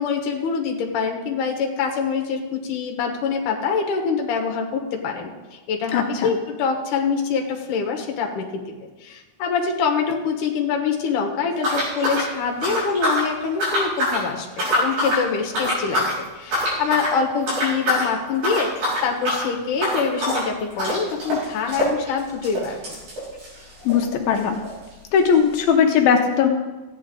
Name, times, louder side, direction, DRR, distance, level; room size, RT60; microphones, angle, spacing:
voice 1, 0.0-23.0, left 5 dB, 65° left, 2 dB, 2.7 m, -25 dB
voice 2, 5.9-6.3 23.9-24.6 25.1-26.5, left 7 dB, 85° left, 2 dB, 2.7 m, -18 dB
sound 1, 11.6-13.3 13.6-14.2 14.5-15.2 15.5-16.2 16.5-17.2 17.5-18.1 18.4-24.1 24.3-24.4 24.6-24.7 25.4-25.5, left 1 dB, 75° right, 6.3 m, -24 dB
15.0 x 9.7 x 3.8 m, 1.2 s
omnidirectional pair, 4.1 m